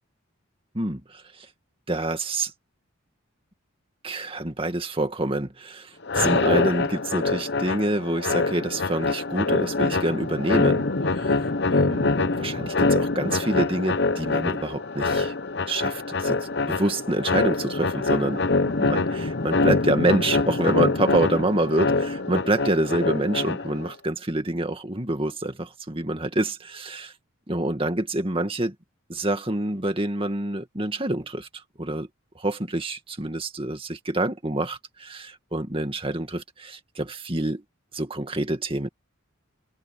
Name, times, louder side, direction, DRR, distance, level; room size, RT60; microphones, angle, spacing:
voice 1, 0.7-1.2 1.9-2.5 4.0-11.4 11.7-15.3 15.7-16.4 16.7-18.4 18.9-27.1 27.5-28.7 29.1-31.5 31.8-32.1 32.4-37.6 37.9-38.9, right 1 dB, 25° right, 2.2 m, -27 dB
sound 1, 6.0-23.9, left 3 dB, 55° left, 1.1 m, -25 dB
head